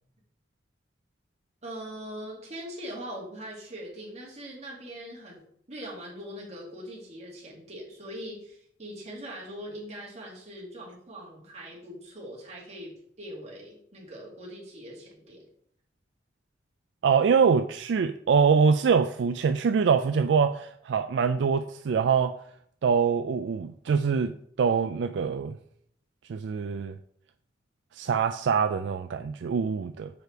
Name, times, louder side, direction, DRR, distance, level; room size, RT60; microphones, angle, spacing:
voice 1, 1.6-5.4 5.7-15.4, equal, 40° right, 2.4 m, -41 dB
voice 2, 17.0-22.3 22.8-25.6 26.3-26.9 27.9-30.1, right 6 dB, 70° right, 0.3 m, -24 dB
7.0 x 4.9 x 4.6 m
head